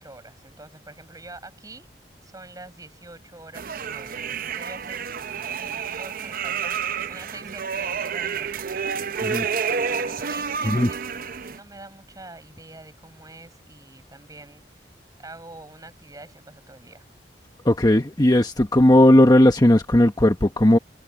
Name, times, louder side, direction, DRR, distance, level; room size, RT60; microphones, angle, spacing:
voice 1, 0.0-1.9 2.2-5.0 5.5-9.3 9.9-14.8 15.2-17.1, right 2 dB, 20° right, 7.2 m, -45 dB
sound 1, 3.5-11.6, right 6 dB, 55° right, 0.7 m, -29 dB
voice 2, 17.6-20.8, left 1 dB, 25° left, 1.1 m, -16 dB
head